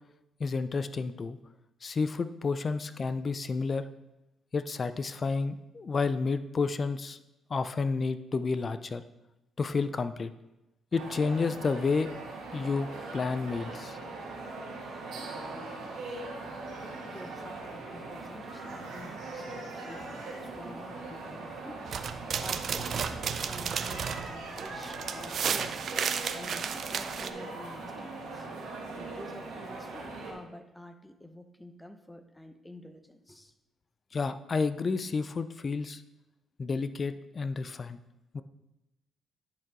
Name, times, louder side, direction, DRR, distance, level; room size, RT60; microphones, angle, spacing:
voice 1, 0.4-1.4 1.8-3.8 4.5-7.2 7.5-9.0 9.6-10.3 10.9-12.1 12.5-12.9 13.1-14.0 34.1-36.0 36.6-38.0 38.3-38.4, left 4 dB, 40° left, 11 dB, 0.4 m, -30 dB
sound 1, 10.9-30.3, right 3 dB, 85° right, 2.0 m, -41 dB
voice 2, 17.0-21.8 22.4-25.9 26.3-28.5 28.9-33.5, left 1 dB, 5° left, 8 dB, 0.7 m, -48 dB
sound 2, 21.9-27.3, right 7 dB, 60° right, 0.5 m, -33 dB
10.5 x 4.6 x 3.7 m, 0.96 s
cardioid pair, 90°, 0 cm